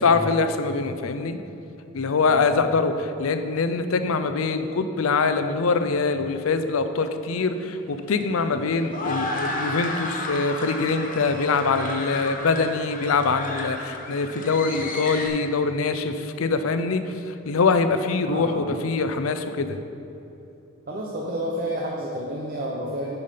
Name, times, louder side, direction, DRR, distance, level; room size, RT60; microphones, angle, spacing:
voice 1, 0.0-1.4 1.9-19.8, left 4 dB, 80° left, 9 dB, 0.5 m, -24 dB
sound 1, 7.3-15.3, left 2 dB, 40° left, 0.9 m, -33 dB
voice 2, 18.2-18.8 20.9-23.2, right 1 dB, 45° right, -2 dB, 0.7 m, -30 dB
9.5 x 5.5 x 5.1 m, 2.9 s
head